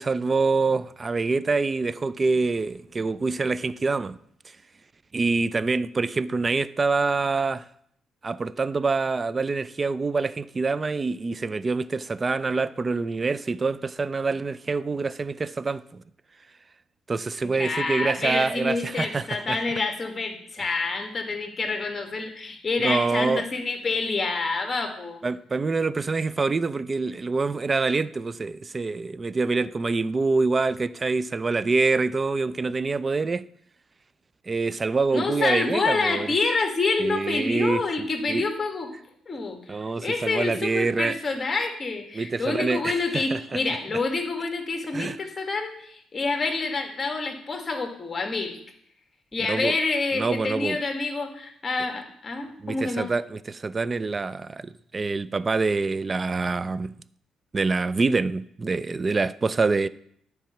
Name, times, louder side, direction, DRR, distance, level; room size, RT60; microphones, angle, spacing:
voice 1, 0.0-4.2 5.1-7.6 8.2-16.0 17.1-19.6 22.8-23.4 25.2-33.5 34.5-36.3 37.0-37.9 38.3-38.5 39.7-41.1 42.1-43.6 44.9-45.2 49.5-49.8 50.1-50.8 52.6-57.0 57.5-59.9, right 3 dB, 30° right, 0.4 m, -26 dB
voice 2, 17.4-25.2 35.1-38.9 39.3-48.6 49.3-53.1, left 3 dB, 30° left, 1.9 m, -27 dB
10.5 x 4.8 x 7.1 m
cardioid pair, 90°, 0 cm